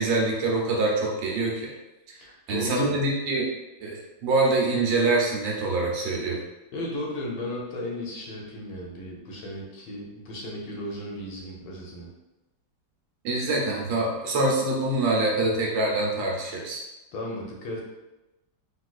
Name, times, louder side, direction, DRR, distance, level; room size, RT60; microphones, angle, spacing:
voice 1, 0.0-1.7 2.5-3.4 3.8-6.4 13.2-16.8, right 2 dB, 75° right, -2 dB, 1.4 m, -25 dB
voice 2, 2.1-3.0 6.7-12.1 17.1-17.8, left 1 dB, 85° left, -2 dB, 1.6 m, -35 dB
4.1 x 2.4 x 2.4 m, 1.0 s
omnidirectional pair, 2.1 m